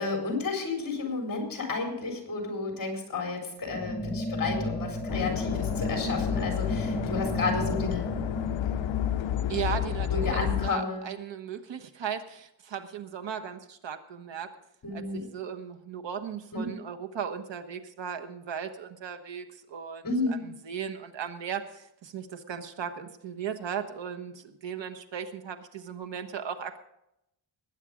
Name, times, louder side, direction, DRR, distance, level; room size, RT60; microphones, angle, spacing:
voice 1, 0.0-8.1 10.1-11.0 14.8-15.3 16.5-16.7 20.0-20.5, left 3 dB, 45° left, 2 dB, 4.4 m, -32 dB
sound 1, 3.6-10.4, left 1 dB, 15° left, 0.9 m, -34 dB
sound 2, 5.1-10.7, left 12 dB, 75° left, 0.6 m, -31 dB
voice 2, 9.5-14.5 14.9-20.0 20.3-26.8, right 7 dB, 70° right, 6 dB, 1.3 m, -37 dB
19.5 x 9.1 x 5.1 m, 0.83 s
wide cardioid pair, 170°, 46 cm